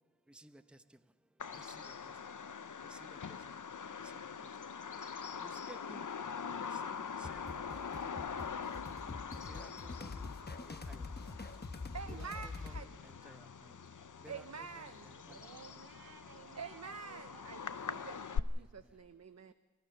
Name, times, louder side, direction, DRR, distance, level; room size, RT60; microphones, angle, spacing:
voice 1, 0.3-0.6 1.6-1.9 2.9-3.0 5.4-6.1 6.5-8.2 9.5-9.7 10.0-10.3 10.9-11.0 12.1-12.9 13.2-13.4 14.2-14.5 14.8-15.4 17.9-18.1, right 1 dB, 5° right, 0.9 m, -56 dB
Bird vocalization bird call bird song, 1.4-18.4, left 6 dB, 55° left, 0.8 m, -44 dB
sound 1, 7.2-12.9, left 3 dB, 25° left, 1.0 m, -45 dB
voice 2, 11.9-13.0 14.3-15.1 16.4-19.5, right 6 dB, 45° right, 0.8 m, -47 dB
voice 3, 15.2-18.5, right 5 dB, 65° right, 1.6 m, -57 dB
30.0 x 14.0 x 6.7 m
wide cardioid pair, 55°, 36 cm